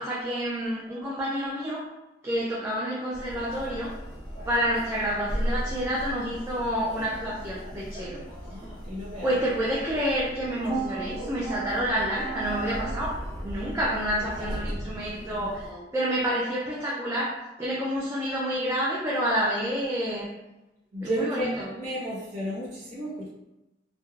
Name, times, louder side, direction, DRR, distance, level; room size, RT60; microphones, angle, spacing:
voice 1, 0.0-1.9 2.2-3.9 4.5-8.2 9.2-20.3 21.0-21.7, equal, 15° right, -5 dB, 0.3 m, -29 dB
Metro Underground Tube Warsaw PL, 3.1-15.7, right 1 dB, 5° left, 0.8 m, -36 dB
voice 2, 8.3-9.4 14.4-14.5 15.2-15.8 20.9-23.3, equal, 40° right, -9 dB, 0.7 m, -34 dB
3.0 x 2.1 x 2.3 m, 0.98 s
head